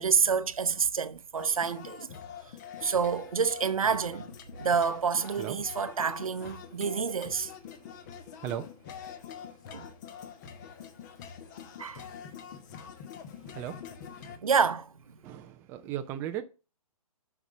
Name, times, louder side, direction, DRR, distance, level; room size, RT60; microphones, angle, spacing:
voice 1, 0.0-2.1 2.8-4.3 4.6-7.5 9.7-9.9 11.8-12.0 14.3-14.9, right 6 dB, 65° right, 0.8 m, -28 dB
sound 1, 1.3-14.4, left 8 dB, 30° left, 1.1 m, -45 dB
voice 2, 13.5-13.9 15.2-16.4, right 11 dB, 10° right, 0.4 m, -36 dB
7.8 x 6.0 x 6.0 m
figure-of-eight pair, 130°, 19 cm